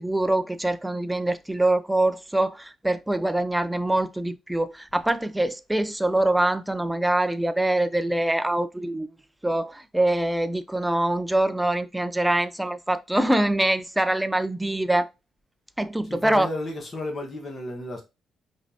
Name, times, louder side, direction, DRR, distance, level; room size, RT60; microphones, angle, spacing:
voice 1, 0.0-9.1 9.4-15.1 15.8-16.5, right 1 dB, 5° right, 0.5 m, -24 dB
voice 2, 16.0-18.0, left 1 dB, 35° left, 1.4 m, -33 dB
4.9 x 3.4 x 2.8 m
cardioid pair, 90°, 0 cm